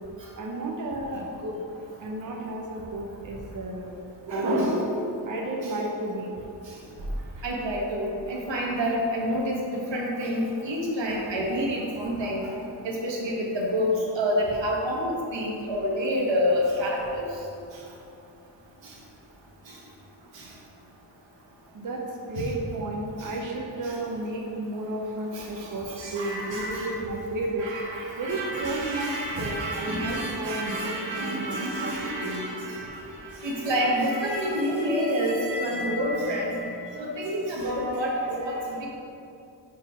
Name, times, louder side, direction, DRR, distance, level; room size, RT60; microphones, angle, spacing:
voice 1, 0.4-1.5 2.0-4.0 4.3-4.7 5.2-6.3 21.7-27.7 28.2-32.4, right 1 dB, 45° right, -1 dB, 0.7 m, -33 dB
voice 2, 4.3-4.9 5.6-5.7 7.4-12.5 12.8-17.3 18.8-18.9 19.7-19.8 20.3-20.5 23.2-23.3 23.8-24.0 25.3-26.9 27.6-38.9, equal, 85° right, -2 dB, 1.4 m, -28 dB
5.5 x 4.7 x 5.9 m, 2.6 s
wide cardioid pair, 165°, 43 cm